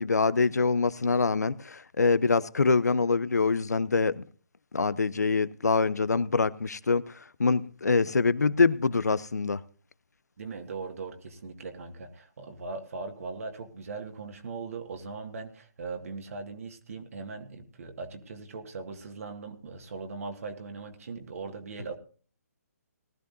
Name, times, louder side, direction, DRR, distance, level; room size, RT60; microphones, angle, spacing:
voice 1, 0.0-4.2 4.7-7.0 7.4-9.6, left 4 dB, 80° left, 0.7 m, -25 dB
voice 2, 10.4-21.9, right 4 dB, 55° right, 1.9 m, -39 dB
19.0 x 13.5 x 2.6 m
figure-of-eight pair, 140°, 9 cm